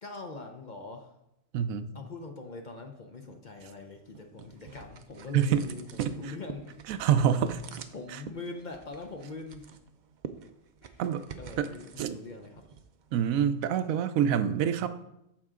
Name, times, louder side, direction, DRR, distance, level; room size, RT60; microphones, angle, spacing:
voice 1, 0.0-1.1 1.9-7.6 7.9-9.7 10.8-11.0 11.4-12.7, left 3 dB, 45° left, 4 dB, 0.7 m, -42 dB
voice 2, 1.5-1.9 5.3-5.6 6.0-6.1 6.9-7.6 8.1-8.2 11.0-11.2 11.6-12.2 13.1-14.9, right 9 dB, 85° right, 11 dB, 1.0 m, -26 dB
sound 1, 3.6-13.8, right 6 dB, 60° right, 0.5 m, -48 dB
13.5 x 4.6 x 3.7 m, 0.84 s
omnidirectional pair, 1.4 m